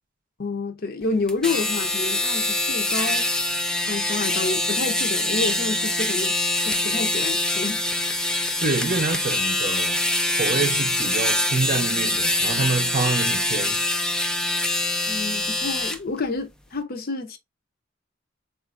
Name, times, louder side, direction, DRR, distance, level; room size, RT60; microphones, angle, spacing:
voice 1, 0.4-3.3 3.9-6.4 6.7-7.8 15.1-17.4, left 3 dB, 50° left, 0.6 m, -29 dB
sound 1, 1.3-16.0, left 2 dB, 5° left, 0.3 m, -24 dB
voice 2, 8.3-10.0 10.3-13.9, right 4 dB, 45° right, 0.6 m, -27 dB
4.0 x 2.5 x 2.4 m
head